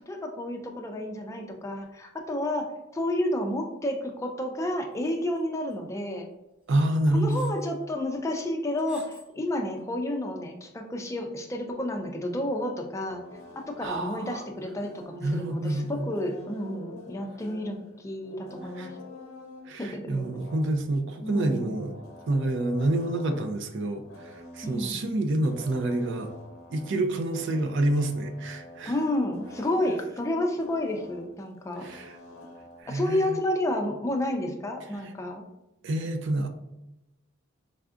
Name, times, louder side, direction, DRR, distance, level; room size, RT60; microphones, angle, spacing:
voice 1, 0.1-2.7 2.9-6.3 7.1-13.2 13.6-19.0 19.8-20.2 21.2-21.8 24.6-24.9 28.8-31.9 32.9-35.4, left 1 dB, 15° left, 3 dB, 0.4 m, -30 dB
metal wires scraping, 5.1-5.4 5.7-5.8 6.7-6.8 7.3-7.7 8.8-9.3 9.8-9.9, left 1 dB, 5° right, 0.7 m, -50 dB
voice 2, 6.7-7.5 13.8-14.4 15.2-16.0 18.8-18.9 19.7-21.9 22.3-26.3 26.7-28.9 31.8-32.2 32.8-33.3 35.8-36.5, right 1 dB, 60° right, 7 dB, 0.4 m, -28 dB
sound 1, 13.0-30.1 30.5-32.8, equal, 90° left, 0.7 m, -47 dB
3.7 x 3.3 x 2.4 m, 0.94 s
head